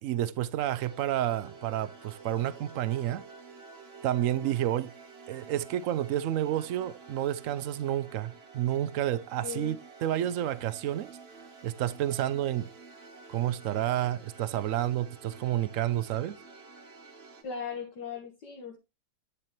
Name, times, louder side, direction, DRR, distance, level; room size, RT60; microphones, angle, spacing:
voice 1, 0.0-3.2 4.0-4.9 5.3-11.1 11.6-12.7 13.3-16.4, right 12 dB, 75° right, 0.7 m, -30 dB
sound 1, 0.6-17.4, right 4 dB, 35° right, 1.5 m, -50 dB
voice 2, 4.1-4.5 9.4-9.8 17.4-18.8, left 6 dB, 65° left, 2.1 m, -39 dB
10.5 x 6.7 x 3.1 m
omnidirectional pair, 2.0 m